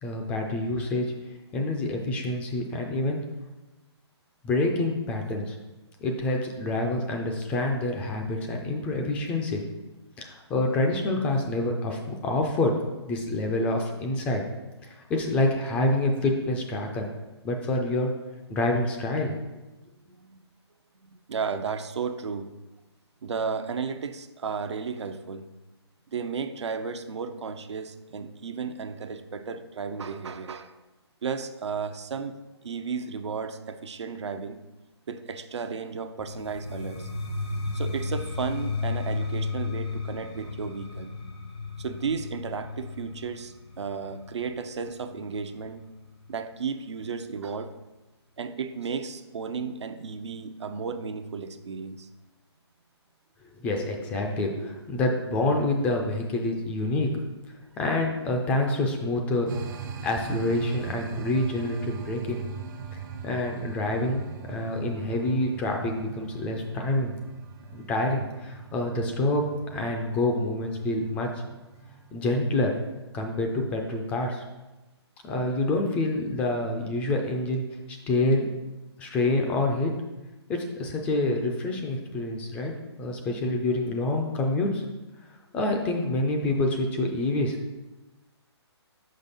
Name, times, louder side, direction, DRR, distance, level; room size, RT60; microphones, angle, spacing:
voice 1, 0.0-1.1 1.5-3.2 4.4-5.6 6.0-9.6 10.2-12.8 13.1-14.4 15.1-17.1 17.4-18.1 18.5-19.3 53.6-57.2 57.8-59.6 60.0-62.4 63.2-67.1 67.7-71.3 72.1-72.8 73.1-74.4 75.2-78.5 79.0-79.9 80.5-82.7 83.0-84.8 85.5-87.7, left 2 dB, 10° left, 2 dB, 0.3 m, -27 dB
voice 2, 21.0-22.5 23.2-25.4 26.1-30.7 31.2-34.6 35.1-37.1 37.7-41.1 41.8-45.8 46.3-47.7 48.4-52.1, right 5 dB, 80° right, 9 dB, 0.6 m, -34 dB
sound 1, 36.2-46.0, left 3 dB, 75° left, 1.2 m, -34 dB
sound 2, 59.5-72.8, right 6 dB, 45° right, 0.7 m, -41 dB
5.2 x 5.2 x 4.1 m, 1.1 s
hypercardioid pair, 155°, 14 cm